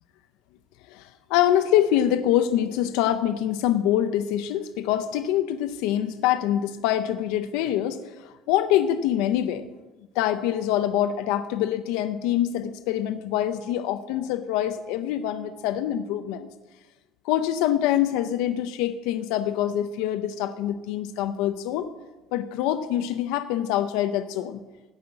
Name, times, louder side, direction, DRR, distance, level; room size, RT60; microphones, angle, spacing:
voice 1, 0.9-9.6 10.1-16.5 17.2-21.9 22.3-24.6, left 11 dB, 80° left, 9 dB, 0.7 m, -25 dB
14.5 x 5.8 x 8.9 m, 1.1 s
cardioid pair, 175°, 0 cm